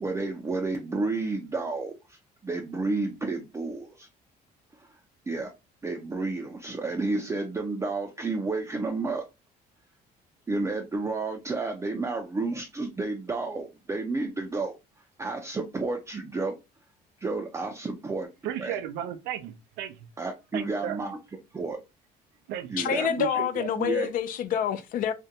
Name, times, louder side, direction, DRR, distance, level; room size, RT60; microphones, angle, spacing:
voice 1, 0.0-2.2 2.4-4.1 4.8-4.9 5.3-5.5 5.8-9.2 10.5-14.8 15.2-16.6 17.2-18.3 18.6-18.8 20.2-21.2 21.5-21.8 22.7-23.4 23.8-24.1, right 3 dB, 15° right, 0.4 m, -31 dB
voice 2, 18.4-20.1 20.5-21.0 22.5-23.7, right 11 dB, 90° right, 0.4 m, -35 dB
voice 3, 22.8-25.1, left 9 dB, 55° left, 0.4 m, -27 dB
2.5 x 2.1 x 2.7 m
cardioid pair, 110°, 17 cm